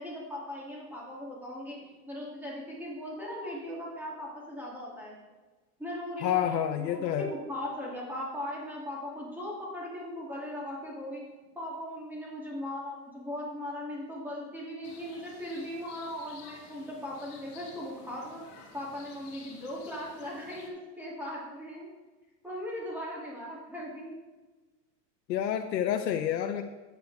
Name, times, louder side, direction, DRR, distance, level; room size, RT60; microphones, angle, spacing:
voice 1, 0.0-5.1 5.8-11.2 11.5-18.4 18.7-21.9 22.4-24.2, left 1 dB, 5° right, -5 dB, 2.6 m, -38 dB
voice 2, 6.2-7.3 25.3-26.6, left 10 dB, 90° left, 6 dB, 0.8 m, -28 dB
sound 1, 14.8-20.7, left 4 dB, 40° left, 2.3 m, -52 dB
10.5 x 8.9 x 3.5 m, 1.3 s
supercardioid pair, 140°, 49 cm